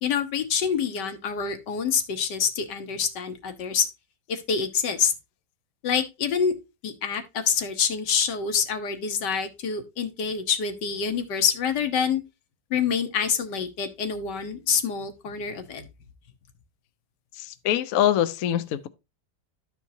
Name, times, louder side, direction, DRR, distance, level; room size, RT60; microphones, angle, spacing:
voice 1, 0.0-3.9 4.3-5.1 5.8-6.6 6.8-12.2 12.7-15.8, left 6 dB, 85° left, 1.7 m, -26 dB
voice 2, 17.4-18.9, left 11 dB, 65° left, 0.9 m, -24 dB
13.0 x 4.5 x 2.7 m
omnidirectional pair, 1.8 m